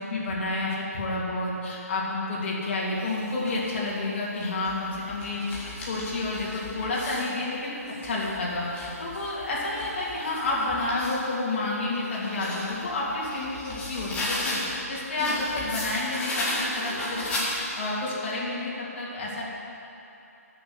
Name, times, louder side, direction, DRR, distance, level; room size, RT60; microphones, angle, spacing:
voice 1, 0.1-7.8 8.0-19.4, left 2 dB, 45° left, -6 dB, 3.2 m, -30 dB
sound 1, 2.9-3.7 4.4-7.3 7.8-11.2 11.7-14.8 15.2-17.9, left 1 dB, 15° left, 2.1 m, -35 dB
10.0 x 7.0 x 8.2 m, 2.9 s
figure-of-eight pair, 145°, 9 cm